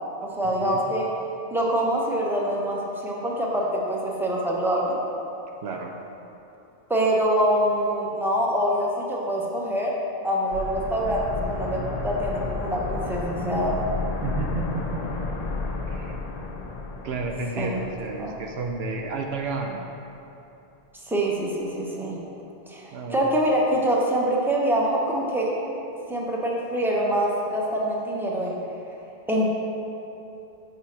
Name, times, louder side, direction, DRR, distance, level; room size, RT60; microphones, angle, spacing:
voice 1, 0.4-1.1 1.5-5.0 6.9-9.9 10.2-13.8 17.6-17.8 18.2-18.3 21.1-22.2 22.7-25.5 26.1-28.6 29.3-29.5, right 1 dB, ahead, -3 dB, 0.7 m, -25 dB
voice 2, 5.6-5.9 14.2-15.2 15.9-16.1 17.0-19.9 22.9-23.2, right 3 dB, 85° right, 2 dB, 0.8 m, -31 dB
sound 1, 10.5-19.2 19.5-19.6, left 3 dB, 50° left, 0.5 m, -32 dB
4.9 x 4.7 x 5.8 m, 2.8 s
omnidirectional pair, 1.0 m